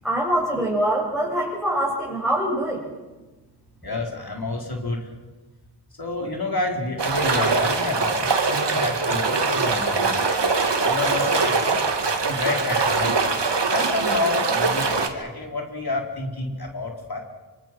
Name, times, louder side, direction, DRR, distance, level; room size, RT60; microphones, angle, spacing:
voice 1, 0.0-2.9, right 1 dB, ahead, -4 dB, 7.5 m, -24 dB
voice 2, 3.8-5.1 6.0-10.3 10.8-11.6 12.2-13.1 13.7-17.2, left 2 dB, 60° left, 1 dB, 4.3 m, -28 dB
sound 1, 7.0-15.1, right 4 dB, 85° right, 2.4 m, -22 dB
27.5 x 25.0 x 6.2 m, 1.2 s
wide cardioid pair, 60°, 41 cm